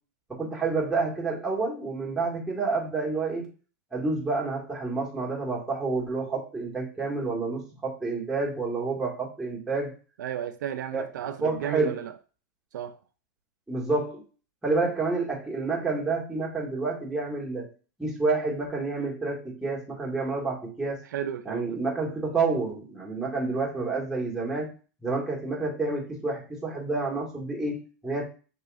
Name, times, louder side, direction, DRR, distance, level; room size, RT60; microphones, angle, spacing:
voice 1, 0.3-3.5 3.9-9.9 10.9-11.0 11.4-12.0 13.7-14.2 14.6-17.7 18.0-21.0 21.4-24.7 25.0-28.4, right 3 dB, 5° right, 1.7 m, -29 dB
voice 2, 10.2-12.1 12.7-13.0 21.0-21.8, right 10 dB, 80° right, 0.5 m, -33 dB
5.6 x 3.8 x 2.4 m
hypercardioid pair, 120°, 10 cm